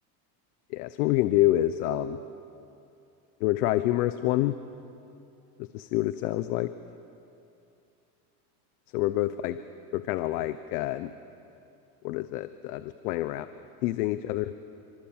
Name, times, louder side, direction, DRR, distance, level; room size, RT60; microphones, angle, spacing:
voice 1, 0.7-2.2 3.4-4.5 5.6-6.7 8.9-9.6 9.9-11.1 12.0-13.4 13.8-14.5, left 15 dB, 65° left, 12 dB, 1.1 m, -27 dB
28.0 x 25.5 x 7.4 m, 2.7 s
supercardioid pair, 145°, 48 cm